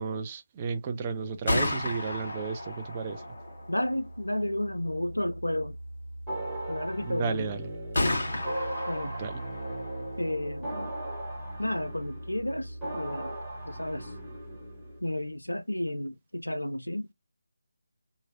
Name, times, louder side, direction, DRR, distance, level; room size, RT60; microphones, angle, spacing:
voice 1, 0.0-3.2 7.0-7.6 9.2-9.4, right 5 dB, 20° right, 0.4 m, -33 dB
Gunshot gunfire, 1.2-15.0, left 1 dB, 45° left, 1.2 m, -36 dB
voice 2, 3.7-5.8 6.7-7.5 8.9-9.2 10.2-10.9 11.6-13.3 13.7-14.1 15.0-17.1, left 1 dB, 80° left, 0.4 m, -32 dB
sound 1, 6.3-15.0, right 1 dB, 5° right, 1.1 m, -39 dB
3.0 x 2.6 x 2.6 m
figure-of-eight pair, 155°, 0 cm